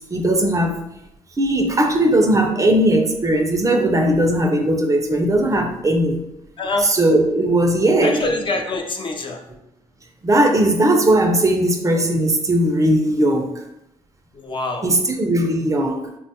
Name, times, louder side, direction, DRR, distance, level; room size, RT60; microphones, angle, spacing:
voice 1, 0.1-0.9 1.4-6.2 6.8-8.3 10.2-13.6 14.8-16.1, right 1 dB, 25° right, 3 dB, 0.4 m, -18 dB
voice 2, 6.6-6.9 8.0-9.4 14.3-14.9, left 2 dB, 40° left, 3 dB, 0.4 m, -25 dB
3.1 x 2.1 x 2.8 m, 0.85 s
cardioid pair, 80°, 13 cm